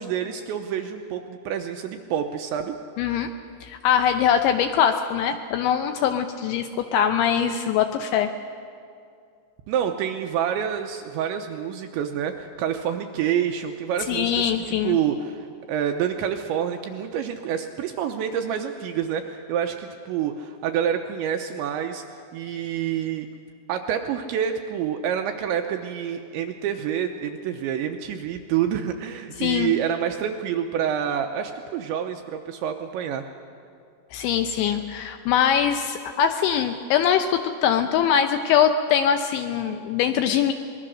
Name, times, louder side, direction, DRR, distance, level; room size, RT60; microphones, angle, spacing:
voice 1, 0.0-2.7 9.7-22.0 22.3-23.3 23.7-33.2, right 9 dB, 80° right, 5 dB, 2.7 m, -27 dB
voice 2, 3.0-3.3 3.6-8.3 14.1-15.0 29.4-29.7 34.1-40.5, left 8 dB, 80° left, 7 dB, 2.7 m, -22 dB
25.0 x 21.0 x 6.4 m, 2.4 s
omnidirectional pair, 5.9 m